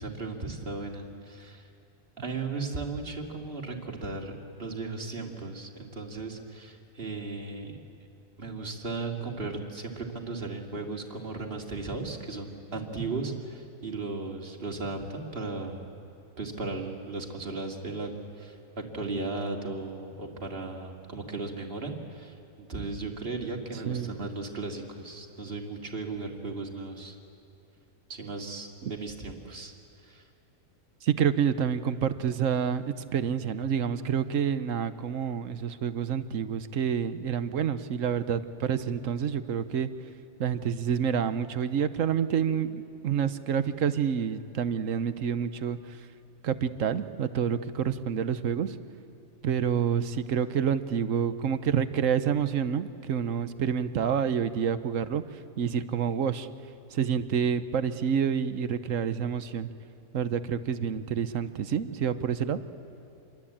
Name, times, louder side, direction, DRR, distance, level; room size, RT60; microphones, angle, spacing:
voice 1, 0.0-1.7 2.2-7.8 8.4-15.9 16.4-27.2 28.1-29.7 30.0-30.3 53.9-54.0, right 3 dB, 45° right, 1 dB, 2.6 m, -36 dB
voice 2, 31.0-39.9 40.4-45.8 46.4-48.7 49.4-55.2 55.6-56.5 56.9-59.7 60.1-62.6, right 8 dB, 75° right, 12 dB, 1.3 m, -28 dB
27.5 x 22.5 x 8.7 m, 2.6 s
omnidirectional pair, 1.4 m